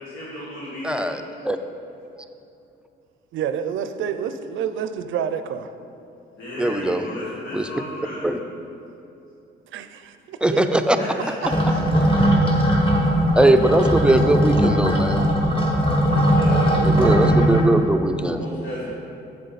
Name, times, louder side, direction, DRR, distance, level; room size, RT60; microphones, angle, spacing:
voice 1, 0.0-1.0 6.4-8.3 10.9-11.6 11.9-12.5 16.0-17.2 18.3-18.9, left 1 dB, 85° left, -7 dB, 1.6 m, -35 dB
voice 2, 0.8-1.6 6.6-7.0 7.5-7.7 8.2-8.4 10.4-11.0 13.4-15.3 16.8-18.4, right 1 dB, 5° right, 7 dB, 0.4 m, -20 dB
voice 3, 3.3-5.7 9.7-10.8 13.0-13.1 16.3-17.6, right 8 dB, 75° right, 10 dB, 0.5 m, -29 dB
sound 1, 11.4-17.6, equal, 25° left, 1.5 m, -19 dB
7.5 x 7.5 x 4.1 m, 2.7 s
cardioid pair, 90°, 20 cm